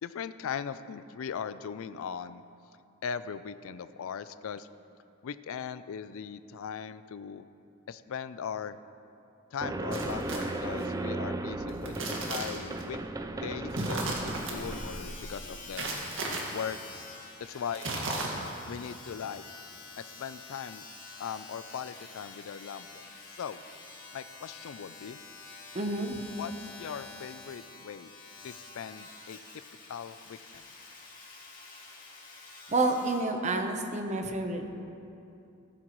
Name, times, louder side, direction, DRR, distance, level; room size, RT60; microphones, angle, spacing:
voice 1, 0.0-2.4 3.0-4.7 5.2-7.4 7.9-8.8 9.5-13.0 13.4-15.9 16.5-16.8 17.4-17.9 18.6-19.4 20.0-20.8 21.2-23.6 24.1-25.2 26.4-28.1 28.4-29.4 29.9-30.6, left 7 dB, 65° left, 13 dB, 0.4 m, -39 dB
sound 1, 9.6-15.7, right 2 dB, 15° right, 0.4 m, -36 dB
sound 2, 9.9-10.8 11.7-12.8 13.7-14.5 15.7-16.4 17.7-18.6, right 2 dB, 60° right, 1.9 m, -35 dB
Domestic sounds home sounds, 14.3-33.3 34.0-34.1, left 3 dB, 40° left, 2.1 m, -48 dB
voice 2, 25.7-26.2 32.7-34.7, right 2 dB, 30° right, 5 dB, 0.9 m, -29 dB
15.0 x 14.0 x 3.1 m, 2.7 s
head